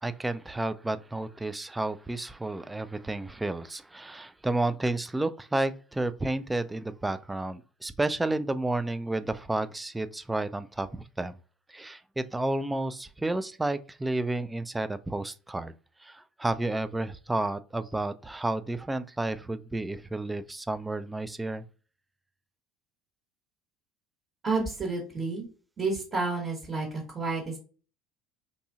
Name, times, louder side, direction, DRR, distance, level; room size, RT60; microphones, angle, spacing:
voice 1, 0.0-11.4 11.7-15.7 16.0-21.6, right 2 dB, 10° right, 0.3 m, -31 dB
voice 2, 24.4-25.4 25.8-27.6, right 3 dB, 35° right, 1.3 m, -30 dB
2.7 x 2.6 x 2.4 m
hypercardioid pair, 70°, 0 cm